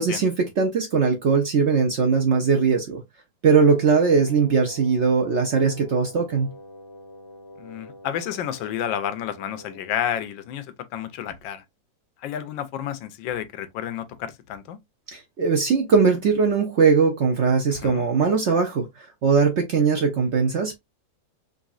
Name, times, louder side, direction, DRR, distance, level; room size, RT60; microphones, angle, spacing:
voice 1, 0.0-3.0 3.4-6.5 15.1-20.7, right 5 dB, 75° right, 0.6 m, -20 dB
Wind instrument woodwind instrument, 3.7-10.3, left 1 dB, 55° left, 1.4 m, -45 dB
voice 2, 7.6-10.7 10.9-11.6 12.2-14.8 17.7-18.0, left 10 dB, 85° left, 1.4 m, -30 dB
5.0 x 2.7 x 2.4 m
omnidirectional pair, 2.0 m